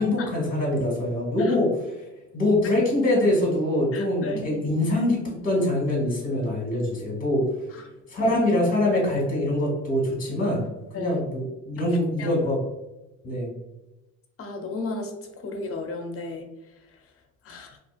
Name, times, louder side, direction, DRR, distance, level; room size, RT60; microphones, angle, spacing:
voice 1, 0.0-1.9 2.3-7.4 8.1-10.6 10.9-12.6 13.2-13.5, left 1 dB, 25° left, -3 dB, 1.2 m, -24 dB
voice 2, 3.9-4.4 7.7-7.8 8.2-8.4 10.9-11.2 12.2-12.3 14.4-15.1 15.4-16.4 17.5-17.8, left 3 dB, 40° left, 4 dB, 0.6 m, -33 dB
2.7 x 2.5 x 2.4 m, 1.0 s
supercardioid pair, 90°, 36 cm